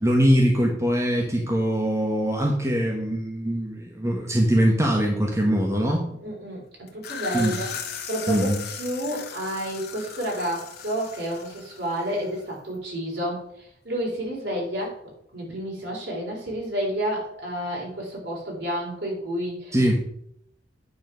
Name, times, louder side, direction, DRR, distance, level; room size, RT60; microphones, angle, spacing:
voice 1, 0.0-6.0 7.3-7.5 8.3-8.6 19.7-20.0, equal, 15° right, 0 dB, 1.3 m, -22 dB
voice 2, 6.2-7.7 8.1-15.0 15.3-19.8, equal, 65° right, -2 dB, 4.1 m, -30 dB
sound 1, 6.9-12.5, left 7 dB, 55° left, 1.6 m, -37 dB
9.4 x 5.0 x 6.2 m, 0.68 s
head